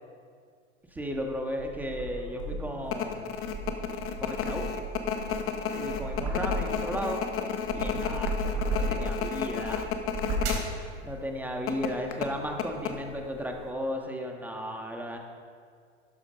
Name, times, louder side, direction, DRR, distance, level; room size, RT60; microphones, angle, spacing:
voice 1, 0.9-3.4 4.2-4.7 5.7-7.2 7.7-10.0 11.0-15.2, equal, 5° right, 2 dB, 1.5 m, -35 dB
sound 1, 1.0-2.8 3.3-7.1 7.5-9.3 9.9-10.8, right 2 dB, 40° right, 3.3 m, -34 dB
sound 2, 2.9-10.6 10.9-11.0 11.7-13.3 13.6-13.7, left 7 dB, 40° left, 1.3 m, -32 dB
12.5 x 9.8 x 5.2 m, 2.1 s
hypercardioid pair, 110°, 36 cm